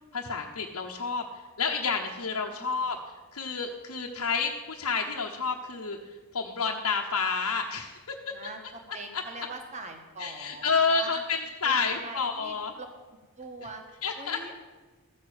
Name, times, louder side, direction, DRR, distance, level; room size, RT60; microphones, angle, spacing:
voice 1, 0.1-8.3 9.1-9.2 10.2-12.7 14.0-14.5, left 5 dB, 80° left, -2 dB, 1.1 m, -30 dB
voice 2, 2.5-2.8 8.3-8.6 8.9-11.2 11.6-12.9 13.4-13.8 14.2-14.5, right 3 dB, 30° right, 4 dB, 1.4 m, -42 dB
14.0 x 6.6 x 8.0 m, 1.2 s
head